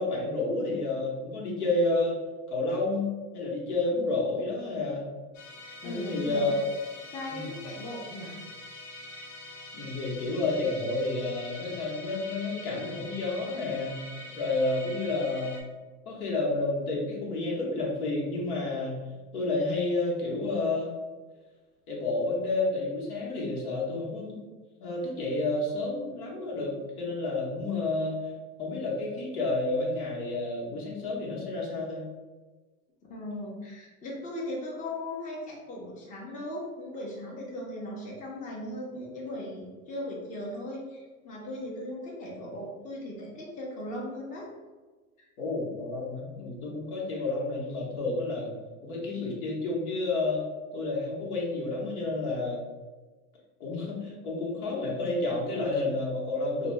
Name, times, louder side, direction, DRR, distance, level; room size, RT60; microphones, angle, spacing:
voice 1, 0.0-2.1 2.5-3.1 3.3-5.0 5.8-6.7 7.3-7.6 9.7-14.0 14.3-15.6 16.1-19.0 19.3-20.9 21.9-24.4 24.8-28.3 28.6-32.0 45.4-48.5 48.8-50.4 50.7-52.7 53.6-56.7, left 2 dB, 75° left, -3 dB, 1.1 m, -30 dB
Musical instrument, 5.3-15.6, left 1 dB, 60° left, 0.8 m, -44 dB
voice 2, 5.8-6.5 7.1-8.4 33.1-44.5 45.2-45.3, left 1 dB, 20° left, -4 dB, 0.6 m, -38 dB
2.5 x 2.2 x 3.1 m, 1.3 s
hypercardioid pair, 105°, 44 cm